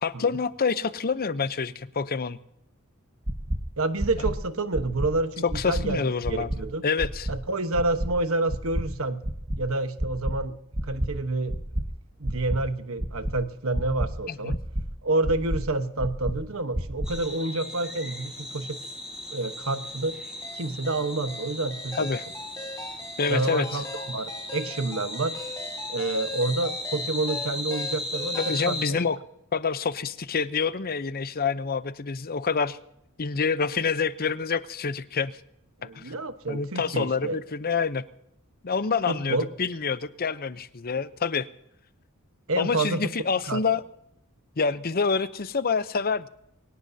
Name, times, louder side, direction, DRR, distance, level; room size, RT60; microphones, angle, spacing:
voice 1, 0.0-2.4 5.4-6.5 6.8-7.3 14.3-14.6 21.9-22.2 23.2-23.8 28.4-29.2 29.5-32.8 33.2-35.3 35.9-36.1 36.5-38.0 38.6-41.5 42.6-43.8 44.6-46.3, left 5 dB, 45° left, 14 dB, 0.7 m, -27 dB
sound 1, 3.3-3.6 4.0-4.3 4.7-5.1 5.5-5.8 6.2-6.6 7.0-7.3 7.7-8.1 8.5-8.8 9.2-9.6 10.0-10.3 10.7-11.1 11.5-11.8 12.2-12.6 13.0-13.3 13.7-14.1 14.5-14.8 15.2-15.6 16.0-16.3 16.7-17.1, right 1 dB, 30° right, 1.2 m, -28 dB
voice 2, 3.8-6.8 7.3-9.2 9.6-10.6 10.8-11.6 12.2-14.6 15.0-18.8 19.3-20.2 20.5-22.1 23.3-25.4 25.9-29.0 35.8-37.4 39.1-39.5 42.5-43.0 43.5-43.6, right 2 dB, 70° right, 9 dB, 1.2 m, -28 dB
sound 2, 17.0-28.9, left 1 dB, 5° right, 4.2 m, -36 dB
sound 3, 20.4-28.7, left 2 dB, 15° left, 1.7 m, -41 dB
23.0 x 18.0 x 2.8 m, 0.78 s
head